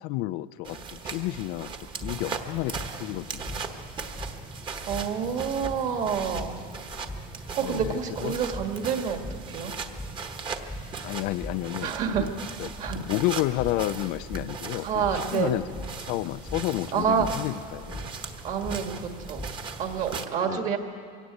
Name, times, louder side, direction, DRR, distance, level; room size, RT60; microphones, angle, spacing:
voice 1, 0.0-3.6 7.6-8.4 11.0-12.3 12.6-12.7 12.9-18.1 20.4-20.7, left 16 dB, 55° left, 14 dB, 0.5 m, -31 dB
sound 1, 0.6-20.3, right 5 dB, 25° right, 1.2 m, -39 dB
sound 2, 2.0-20.1, left 1 dB, 5° left, 0.7 m, -41 dB
voice 2, 4.9-6.6 7.6-9.2 9.5-9.7 11.8-12.3 12.8-13.0 14.8-15.5 16.9-17.3 18.4-19.4 19.8-20.8, right 7 dB, 45° right, 5 dB, 1.9 m, -28 dB
23.0 x 17.5 x 8.4 m, 2.3 s
cardioid pair, 160°, 18 cm